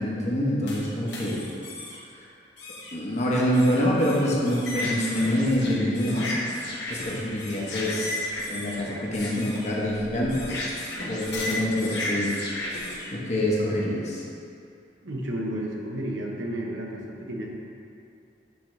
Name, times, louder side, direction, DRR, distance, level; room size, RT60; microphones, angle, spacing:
voice 1, 0.0-1.4 2.9-6.3 6.9-8.2 8.5-10.6 11.1-12.8 13.1-14.2, equal, 40° left, -4 dB, 1.0 m, -26 dB
sound 1, 0.7-2.0 2.6-2.9 3.5-13.1, left 1 dB, 65° left, 1.3 m, -34 dB
voice 2, 15.0-17.6, right 1 dB, 90° right, -1 dB, 0.9 m, -32 dB
8.1 x 3.8 x 3.2 m, 2.5 s
head